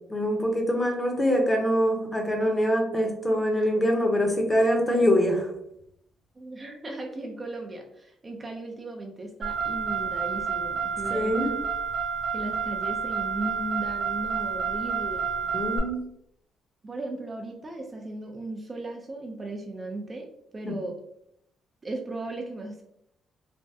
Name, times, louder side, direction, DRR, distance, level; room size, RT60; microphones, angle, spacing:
voice 1, 0.1-5.5 11.1-11.5 15.5-16.0 20.7-20.8, equal, 15° left, 1 dB, 0.8 m, -24 dB
voice 2, 6.4-11.6 12.3-15.3 16.8-20.3 20.5-21.0 21.8-22.8, right 2 dB, 30° right, 1 dB, 0.5 m, -36 dB
Car, 9.4-15.8, right 6 dB, 90° right, 0.9 m, -29 dB
3.3 x 2.1 x 2.7 m, 0.75 s
cardioid pair, 90°, 0 cm